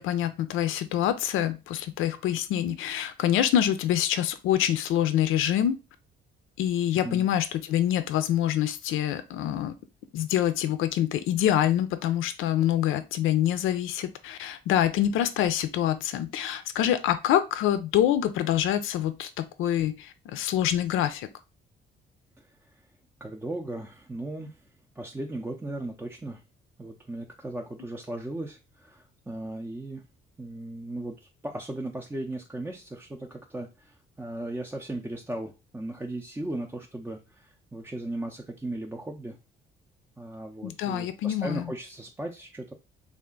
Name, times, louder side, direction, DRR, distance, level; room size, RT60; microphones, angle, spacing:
voice 1, 0.0-5.8 6.6-9.7 10.1-21.3 40.6-41.7, left 11 dB, 90° left, 11 dB, 0.4 m, -26 dB
voice 2, 23.2-24.6 25.0-26.4 26.8-30.0 30.4-39.4 40.2-42.7, right 1 dB, 10° right, 0 dB, 0.5 m, -37 dB
3.4 x 2.5 x 3.7 m, 0.28 s
cardioid pair, 90°, 20 cm